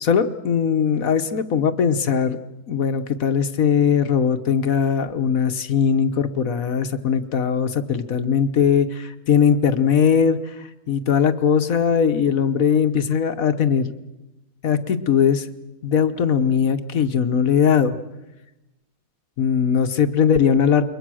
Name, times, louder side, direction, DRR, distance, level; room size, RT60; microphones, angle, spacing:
voice 1, 0.0-2.4 2.7-13.9 14.6-15.5 15.8-17.9 19.4-20.8, left 7 dB, 55° left, 9 dB, 1.4 m, -20 dB
28.0 x 22.5 x 6.3 m, 0.98 s
omnidirectional pair, 1.9 m